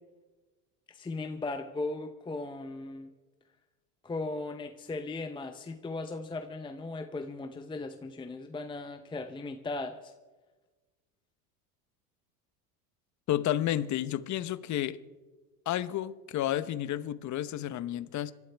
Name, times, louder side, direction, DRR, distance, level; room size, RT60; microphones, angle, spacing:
voice 1, 0.9-3.1 4.0-10.1, left 3 dB, 10° left, 0.7 m, -37 dB
voice 2, 13.3-15.0 15.7-18.3, left 12 dB, 40° left, 0.9 m, -31 dB
26.5 x 12.0 x 3.4 m
supercardioid pair, 100°, 46 cm